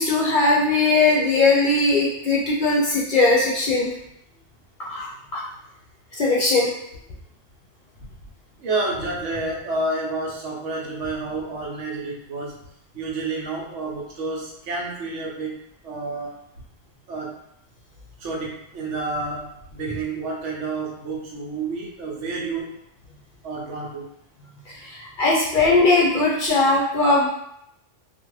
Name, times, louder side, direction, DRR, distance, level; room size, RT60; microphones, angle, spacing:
voice 1, 0.0-3.9 4.8-5.1 5.3-5.4 6.2-6.7 24.9-27.3, left 3 dB, 55° left, -5 dB, 0.6 m, -19 dB
voice 2, 8.6-12.5 12.9-15.6 15.8-16.3 17.1-17.4 18.2-22.7 23.4-24.0, right 3 dB, 80° right, -3 dB, 1.0 m, -29 dB
2.4 x 2.4 x 3.0 m, 0.76 s
omnidirectional pair, 1.2 m